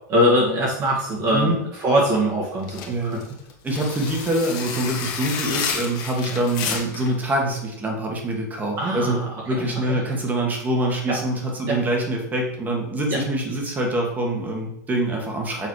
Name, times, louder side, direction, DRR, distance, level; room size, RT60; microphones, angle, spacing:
voice 1, 0.1-3.2 6.3-6.4 8.8-10.0 11.1-11.2 11.7-11.8 13.1-13.2, equal, 35° right, -4 dB, 1.9 m, -23 dB
sound 1, 2.6-7.1, left 6 dB, 40° left, 1.7 m, -30 dB
voice 2, 2.9-3.2 3.6-9.2 9.4-15.7, right 1 dB, 15° right, 1 dB, 1.8 m, -25 dB
7.0 x 4.1 x 4.8 m, 0.77 s
hypercardioid pair, 130°, 10 cm